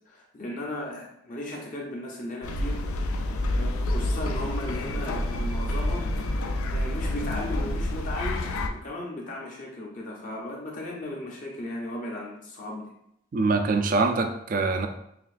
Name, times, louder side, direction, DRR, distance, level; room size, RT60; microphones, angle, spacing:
voice 1, 0.1-3.2 3.5-6.4 6.7-12.9, left 1 dB, 35° left, -2 dB, 0.6 m, -36 dB
sound 1, 2.4-8.7, left 1 dB, 80° left, 0.4 m, -28 dB
voice 2, 13.3-14.9, right 3 dB, 40° right, 6 dB, 0.3 m, -24 dB
5.9 x 2.5 x 2.5 m, 0.76 s
head